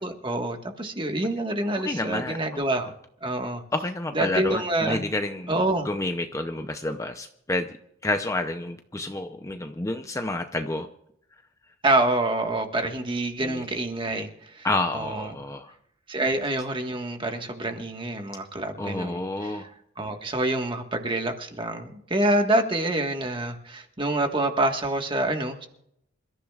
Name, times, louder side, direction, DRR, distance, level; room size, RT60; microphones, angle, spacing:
voice 1, 0.0-2.9 3.2-3.6 4.1-5.0 5.5-5.9 11.8-14.7 14.9-15.3 16.1-19.5 20.0-25.7, right 1 dB, 25° right, 4 dB, 1.5 m, -26 dB
voice 2, 1.7-2.6 3.7-5.5 5.8-7.7 8.0-10.9 13.4-13.6 14.6-15.7 18.8-19.7, left 2 dB, 15° left, 6 dB, 0.6 m, -29 dB
27.5 x 14.0 x 2.4 m, 0.74 s
head